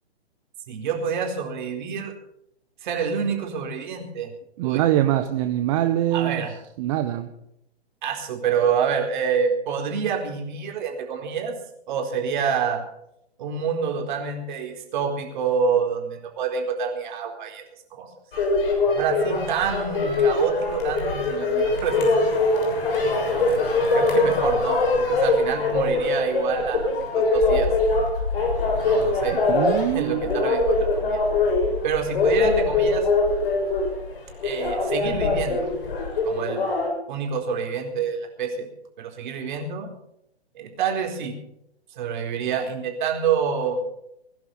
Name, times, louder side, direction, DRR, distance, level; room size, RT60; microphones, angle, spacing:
voice 1, 0.7-2.1 2.8-4.3 4.6-4.8 6.1-6.6 8.0-11.5 11.9-12.8 13.4-17.6 17.9-18.1 18.9-22.3 23.5-23.6 23.9-26.9 27.1-27.7 28.8-29.4 29.7-31.2 31.8-33.1 34.4-35.7 36.2-36.6 37.1-38.7 39.0-39.9 40.5-41.4 41.9-43.8, right 6 dB, 45° right, 3 dB, 4.3 m, -27 dB
voice 2, 4.6-6.4 6.8-7.3 29.5-30.5, right 13 dB, 30° right, 7 dB, 1.1 m, -23 dB
sound 1, 18.3-36.9, left 2 dB, 55° left, 6.6 m, -22 dB
21.5 x 11.5 x 5.6 m, 0.77 s
hypercardioid pair, 135°, 33 cm